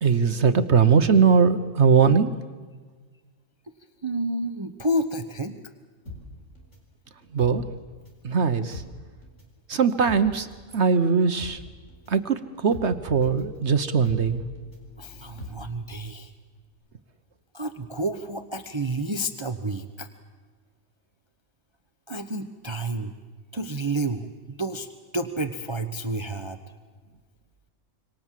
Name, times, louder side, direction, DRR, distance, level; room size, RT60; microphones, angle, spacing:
voice 1, 0.0-2.4 7.3-7.6 8.2-8.8 9.7-10.5 10.7-11.6 12.1-14.4, right 6 dB, 60° right, 10 dB, 1.2 m, -20 dB
voice 2, 4.0-5.6 15.0-16.3 17.5-20.1 22.1-23.1 23.5-24.9 25.1-26.6, right 1 dB, 25° right, 8 dB, 1.0 m, -30 dB
sound 1, 6.1-8.3 8.6-16.3 16.6-16.7, left 2 dB, 65° left, 5.0 m, -42 dB
27.0 x 24.5 x 7.5 m, 1.5 s
omnidirectional pair, 1.3 m